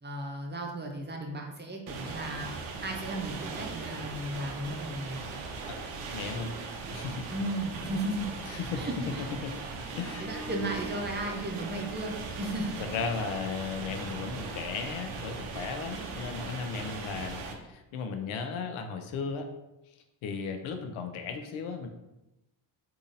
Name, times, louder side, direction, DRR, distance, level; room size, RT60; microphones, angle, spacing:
voice 1, 0.0-2.5 2.8-5.2 7.3-8.3 8.8-9.3 10.2-12.8, right 1 dB, 20° right, 1 dB, 0.7 m, -35 dB
sound 1, 1.9-17.5, right 4 dB, 80° right, 0.7 m, -39 dB
voice 2, 6.1-6.5 6.9-7.3 8.5-8.8 9.4-9.5 9.9-10.2 12.9-19.5 19.9-20.0 20.2-21.9, left 5 dB, 75° left, 6 dB, 0.6 m, -35 dB
Bowed string instrument, 10.0-15.0, equal, 5° left, 1.0 m, -47 dB
3.6 x 2.7 x 2.6 m, 0.95 s
supercardioid pair, 65°, 49 cm